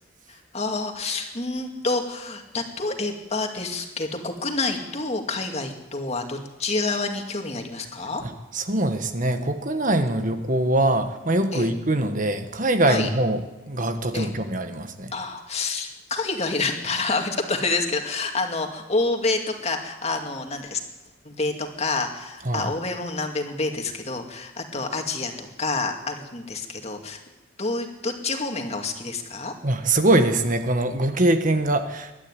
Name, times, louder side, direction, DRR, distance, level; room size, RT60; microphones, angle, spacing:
voice 1, 0.3-8.2 11.5-11.7 12.9-13.1 14.1-14.3 15.1-20.8 21.2-27.2 27.6-29.5, left 3 dB, 30° left, 4 dB, 2.3 m, -28 dB
voice 2, 8.2-15.1 22.4-22.7 29.6-32.1, right 1 dB, 40° right, 8 dB, 1.4 m, -23 dB
22.5 x 12.5 x 9.9 m, 1.0 s
head